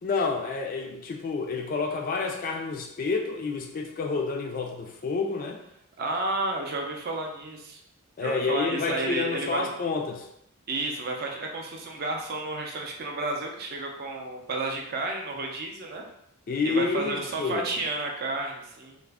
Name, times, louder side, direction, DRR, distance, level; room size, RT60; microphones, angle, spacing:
voice 1, 0.0-5.6 8.2-10.3 16.5-17.7, left 4 dB, 40° left, 2 dB, 0.3 m, -29 dB
voice 2, 6.0-7.8 8.2-9.7 10.7-16.0 16.6-19.0, right 2 dB, 45° right, 1 dB, 0.4 m, -31 dB
2.4 x 2.0 x 3.3 m, 0.78 s
head